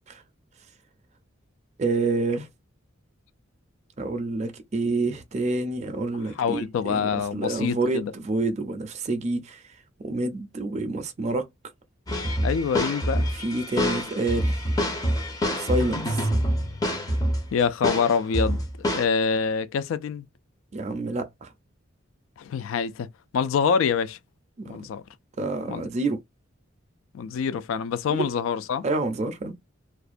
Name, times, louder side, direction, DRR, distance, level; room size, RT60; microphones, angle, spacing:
voice 1, 1.8-2.5 4.0-9.6 10.0-11.5 13.3-14.7 15.6-16.3 20.7-21.5 24.6-24.9 25.4-26.2 28.1-28.3 28.8-29.6, right 2 dB, 35° right, 0.4 m, -28 dB
voice 2, 6.4-8.1 12.4-13.3 17.5-20.2 22.4-23.1 23.3-24.2 24.7-25.0 25.7-25.9 27.1-28.8, left 6 dB, 75° left, 0.3 m, -26 dB
sound 1, 12.1-17.5 17.8-19.1, equal, 20° left, 0.5 m, -26 dB
2.4 x 2.1 x 2.4 m
head